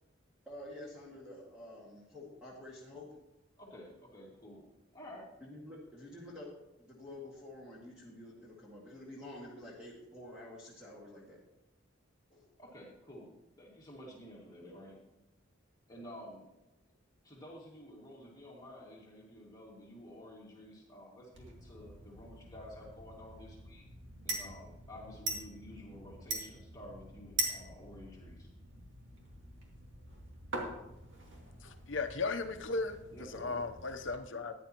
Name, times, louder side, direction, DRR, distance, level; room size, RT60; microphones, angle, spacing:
voice 1, 0.5-3.1 5.4-6.5 6.8-11.4 12.3-12.5 14.6-14.7, left 1 dB, 5° right, -6 dB, 2.0 m, -49 dB
voice 2, 3.6-4.7 4.9-5.3 12.6-15.0 15.9-16.5 17.2-23.9 24.2-28.5 33.1-33.6, left 1 dB, 20° left, -3 dB, 2.1 m, -51 dB
sound 1, 21.3-34.1, right 2 dB, 65° right, 2.3 m, -43 dB
voice 3, 31.6-33.0 33.3-34.5, left 3 dB, 65° left, 7 dB, 0.9 m, -36 dB
14.5 x 9.9 x 3.0 m, 0.96 s
head